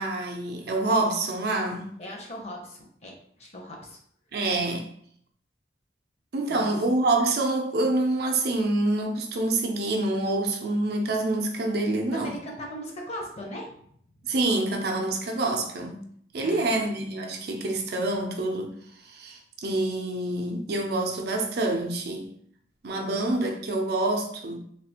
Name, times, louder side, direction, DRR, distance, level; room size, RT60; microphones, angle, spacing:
voice 1, 0.0-1.9 4.3-4.9 6.3-12.3 14.2-16.1 16.3-18.7 19.0-22.3 22.8-24.6, right 2 dB, 60° right, 0.5 m, -26 dB
voice 2, 2.0-4.0 6.5-6.7 12.1-13.9 14.2-14.3 16.4-16.7, equal, 35° left, 0.7 m, -39 dB
3.3 x 2.4 x 2.8 m
head